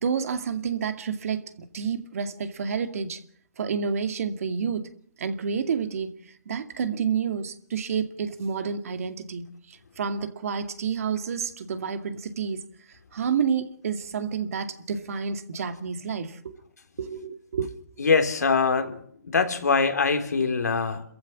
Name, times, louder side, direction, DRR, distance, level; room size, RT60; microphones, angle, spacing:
voice 1, 0.0-3.2 3.6-4.9 5.2-6.1 6.5-12.6 13.1-16.5 17.0-17.7 18.0-18.1, right 6 dB, 60° right, 2.2 m, -29 dB
voice 2, 18.0-21.0, left 5 dB, 80° left, 3.3 m, -23 dB
28.0 x 15.0 x 7.4 m
hypercardioid pair, 145°, 9 cm